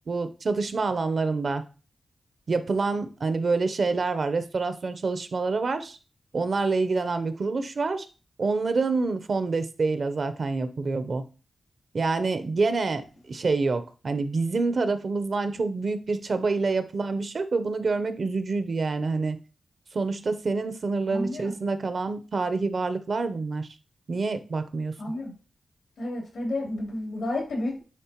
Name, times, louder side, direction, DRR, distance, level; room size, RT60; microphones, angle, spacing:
voice 1, 0.1-1.6 2.5-6.0 6.3-8.1 8.4-11.2 11.9-19.4 19.9-23.7 24.1-24.9, right 3 dB, 55° right, 10 dB, 0.7 m, -27 dB
voice 2, 21.1-21.6 25.0-25.3 26.0-27.8, left 1 dB, 85° left, -1 dB, 3.0 m, -31 dB
9.3 x 3.4 x 2.9 m, 0.34 s
cardioid pair, 80°, 0 cm